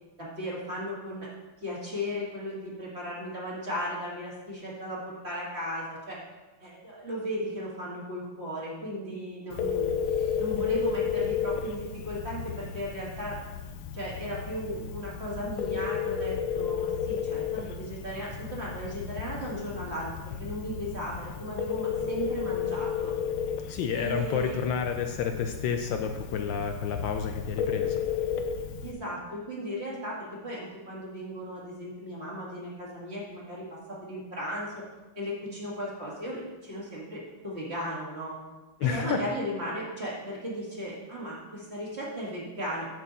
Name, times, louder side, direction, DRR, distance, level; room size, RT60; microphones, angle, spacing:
voice 1, 0.2-1.3 1.6-6.2 6.6-9.9 10.4-13.4 13.9-23.2 23.9-24.6 28.8-34.8 35.2-38.3 38.8-42.9, equal, 30° right, -5 dB, 2.4 m, -36 dB
Telephone, 9.5-28.9, left 8 dB, 90° left, 1.6 m, -33 dB
voice 2, 23.7-28.0 38.8-39.2, left 7 dB, 75° left, 5 dB, 1.3 m, -30 dB
9.2 x 7.9 x 4.1 m, 1.2 s
omnidirectional pair, 2.3 m